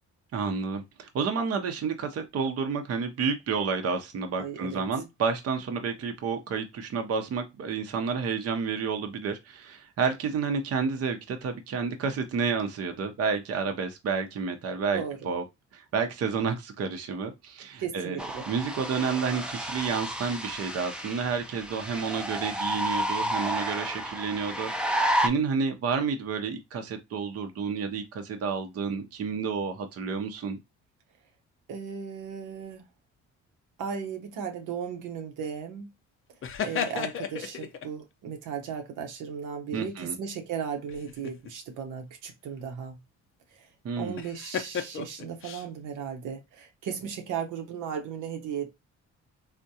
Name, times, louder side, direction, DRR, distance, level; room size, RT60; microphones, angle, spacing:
voice 1, 0.3-15.4 15.7-18.2 18.5-30.6 39.7-40.2 43.8-44.2, right 5 dB, 55° right, 0.6 m, -30 dB
voice 2, 4.4-4.8 14.9-15.2 17.8-18.4 31.7-32.8 33.8-35.9 36.6-43.0 43.5-43.7 44.0-48.7, right 7 dB, 90° right, 0.8 m, -36 dB
sound 1, 18.2-25.3, right 1 dB, 5° right, 0.4 m, -31 dB
sound 2, 36.4-37.9 40.9-41.5 44.2-45.7, left 7 dB, 45° left, 0.5 m, -34 dB
3.5 x 2.1 x 2.7 m
cardioid pair, 90°, 30 cm